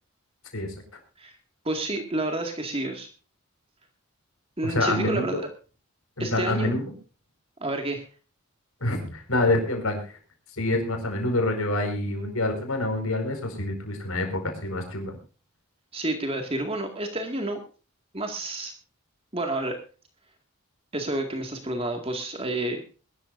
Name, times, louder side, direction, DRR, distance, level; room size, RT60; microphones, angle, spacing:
voice 1, 1.6-3.1 4.6-5.4 6.2-6.8 7.6-8.1 15.9-17.6 18.1-18.7 19.3-19.8 20.9-22.8, right 1 dB, 25° right, 4 dB, 2.1 m, -29 dB
voice 2, 4.6-5.4 6.2-6.9 8.8-10.2 10.5-15.2, left 2 dB, 80° left, 4 dB, 5.0 m, -27 dB
21.5 x 13.5 x 2.6 m, 0.36 s
head